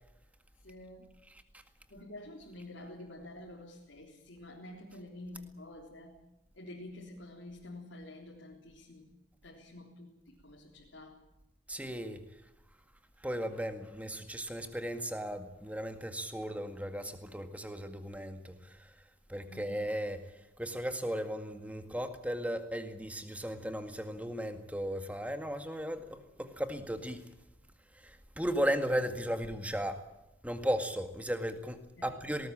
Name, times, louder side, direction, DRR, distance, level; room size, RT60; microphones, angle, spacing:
voice 1, 0.6-1.1 1.9-6.2 6.5-9.1 9.4-11.2 19.4-19.8 32.0-32.2, left 1 dB, 65° left, 3.7 m, -49 dB
voice 2, 11.7-12.3 13.2-18.9 19.3-27.3 27.9-30.1 30.4-32.5, equal, 5° right, 1.9 m, -36 dB
20.0 x 19.0 x 8.8 m
head